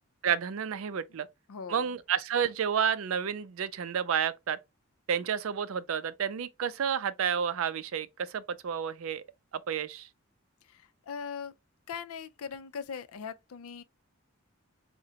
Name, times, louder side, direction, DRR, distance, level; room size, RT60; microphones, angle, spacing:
voice 1, 0.2-1.3 1.7-4.6 5.1-9.2 9.5-10.1, right 7 dB, 70° right, 0.4 m, -30 dB
voice 2, 1.5-1.9 10.6-11.5 11.9-13.8, left 6 dB, 80° left, 0.4 m, -40 dB
4.8 x 2.1 x 2.7 m
head